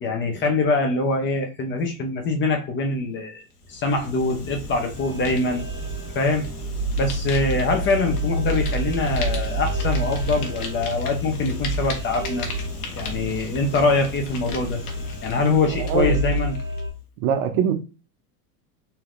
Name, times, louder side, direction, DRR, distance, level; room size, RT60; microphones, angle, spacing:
voice 1, 0.0-3.4 3.7-5.6 6.1-6.5 7.0-12.5 12.9-14.8 15.2-16.6, left 3 dB, 25° left, 0.7 m, -23 dB
Fire, 3.5-16.9, left 2 dB, 85° left, 1.2 m, -35 dB
sound 1, 4.9-16.9, right 1 dB, 30° right, 1.4 m, -29 dB
voice 2, 15.8-16.1 17.2-17.7, right 8 dB, 50° right, 0.6 m, -22 dB
3.3 x 2.8 x 2.5 m
supercardioid pair, 115°, 44 cm